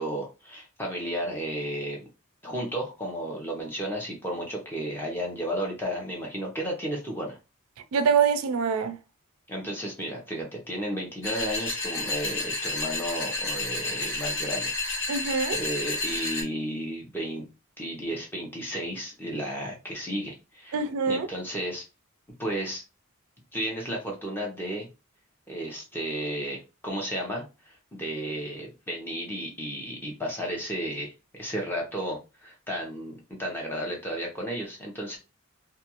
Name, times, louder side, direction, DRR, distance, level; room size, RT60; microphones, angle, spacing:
voice 1, 0.0-2.0 2.4-7.4 9.5-14.8 15.5-17.5 17.8-20.8 21.1-21.8 22.4-22.8 23.5-24.9 25.5-31.1 31.4-35.2, equal, 10° left, 0.7 m, -33 dB
voice 2, 7.9-9.0 15.1-15.6 20.7-21.3, right 6 dB, 80° right, 0.4 m, -24 dB
sound 1, 11.2-16.4, left 2 dB, 60° left, 1.2 m, -31 dB
2.4 x 2.3 x 2.8 m
head